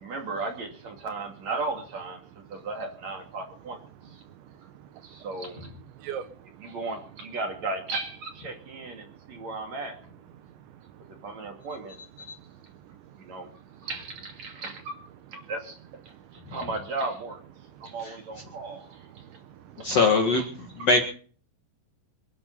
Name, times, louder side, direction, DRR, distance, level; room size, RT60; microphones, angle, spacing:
voice 1, 0.0-4.2 5.0-5.7 6.6-10.0 11.1-12.0 13.2-13.5 13.8-15.0 15.3-15.8 16.0-16.1 16.5-17.4 17.8-19.2 19.8-20.0 20.3-20.4 20.8-20.9, right 3 dB, 40° right, 3 dB, 3.2 m, -35 dB
voice 2, 6.0-6.8 10.9-11.1 13.7-13.8 16.4-16.5 19.1-19.9, right 8 dB, 75° right, 10 dB, 3.2 m, -42 dB
voice 3, 19.8-20.4 20.8-21.0, left 3 dB, 45° left, 2 dB, 2.2 m, -21 dB
27.0 x 11.5 x 4.1 m, 0.43 s
omnidirectional pair, 5.5 m